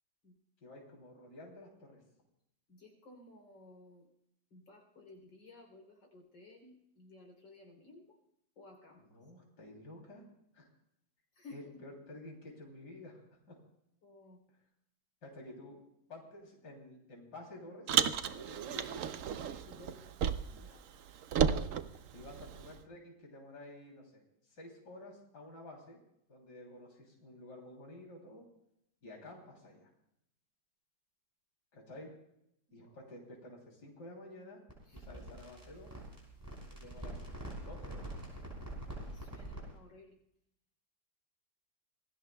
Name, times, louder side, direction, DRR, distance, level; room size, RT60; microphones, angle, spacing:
voice 1, 0.6-2.0 9.0-10.2 10.5-10.7 11.5-13.2 13.5-13.6 15.2-15.8 16.1-17.9 18.2-20.0 22.1-26.0 26.3-28.4 29.0-29.9 31.7-32.1 32.7-34.6 34.9-35.9 36.7-37.2 37.6-38.1, left 1 dB, 60° left, -1 dB, 3.8 m, -51 dB
voice 2, 2.7-4.0 4.5-8.1 8.6-9.0 11.4-11.6 14.0-14.4 20.4-20.8 39.2-40.1, left 2 dB, 85° left, 1 dB, 4.2 m, -56 dB
Car, 17.9-20.7 20.9-22.8, right 8 dB, 65° right, 0.8 m, -33 dB
sound 1, 34.7-39.8, right 1 dB, 10° right, 5.3 m, -45 dB
26.5 x 19.5 x 2.3 m, 0.78 s
omnidirectional pair, 2.0 m